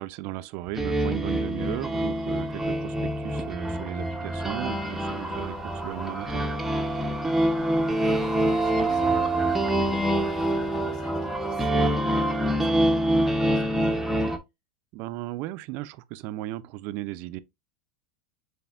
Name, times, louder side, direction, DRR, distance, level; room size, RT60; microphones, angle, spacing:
voice 1, 0.0-6.4 14.9-17.4, right 16 dB, 55° right, 0.4 m, -36 dB
sound 1, 0.8-14.4, right 1 dB, 5° right, 0.6 m, -26 dB
sound 2, 4.4-10.9, left 2 dB, 35° left, 3.0 m, -47 dB
voice 2, 7.4-14.4, left 3 dB, 85° left, 1.6 m, -47 dB
6.9 x 3.3 x 2.3 m
supercardioid pair, 115°, 4 cm